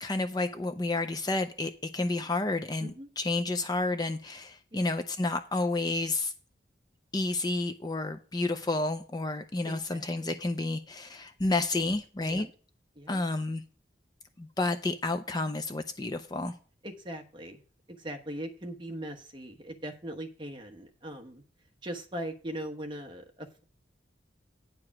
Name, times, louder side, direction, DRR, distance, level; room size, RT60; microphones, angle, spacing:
voice 1, 0.0-6.3 7.1-12.5 13.1-13.6 14.4-16.5, left 2 dB, 20° left, 0.4 m, -30 dB
voice 2, 9.6-10.3 12.2-12.5 12.9-13.2 16.8-17.6 17.9-21.4 21.8-23.6, right 1 dB, 25° right, 1.1 m, -40 dB
9.8 x 4.8 x 5.8 m
head